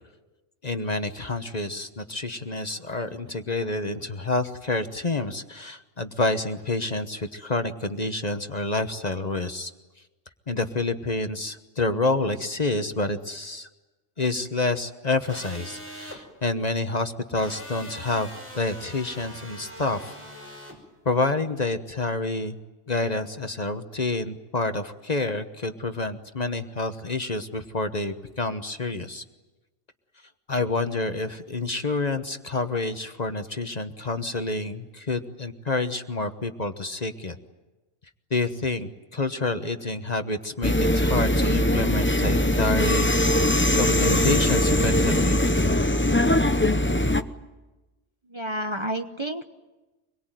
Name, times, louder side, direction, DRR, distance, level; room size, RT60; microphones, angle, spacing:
voice 1, 0.6-9.7 10.5-13.7 14.2-18.3 18.5-20.2 21.0-22.6 22.9-29.2 30.5-37.4 38.3-45.4, left 3 dB, 35° left, 8 dB, 1.2 m, -28 dB
sound 1, 15.3-16.2 17.4-20.8, equal, 10° right, 5.7 m, -42 dB
sound 2, 40.6-47.2, left 1 dB, 10° left, 0.7 m, -21 dB
voice 2, 48.3-49.4, right 1 dB, 25° right, 5 dB, 0.9 m, -30 dB
25.0 x 22.0 x 9.1 m, 1.1 s
omnidirectional pair, 1.2 m